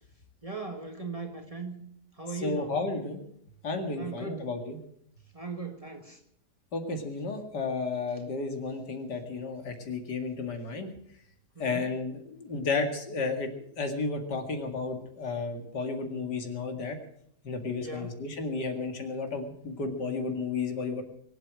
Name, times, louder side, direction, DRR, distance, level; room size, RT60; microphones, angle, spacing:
voice 1, 0.4-1.8 2.2-2.8 4.0-4.5 5.3-6.2 11.6-11.9 17.8-18.2, right 3 dB, 20° right, 4 dB, 1.9 m, -38 dB
voice 2, 2.4-3.2 3.6-4.8 6.7-10.9 11.6-13.5 13.8-17.0 17.4-21.0, left 3 dB, 85° left, 5 dB, 2.7 m, -32 dB
23.0 x 8.2 x 7.6 m, 0.69 s
omnidirectional pair, 1.8 m